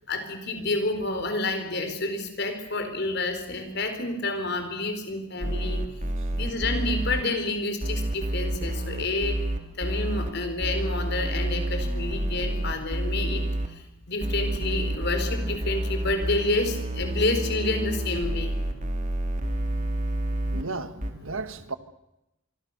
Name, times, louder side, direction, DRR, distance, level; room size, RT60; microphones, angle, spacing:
voice 1, 0.1-5.8 6.3-9.4 9.8-13.4 13.7-18.6, left 2 dB, 50° left, 4.7 m, -29 dB
sound 1, 5.4-7.2 7.8-10.3 10.6-13.7 14.2-20.6 21.0-21.1, right 1 dB, 35° right, 2.8 m, -29 dB
voice 2, 20.5-21.7, right 3 dB, 70° right, 1.7 m, -34 dB
26.0 x 24.0 x 6.8 m
head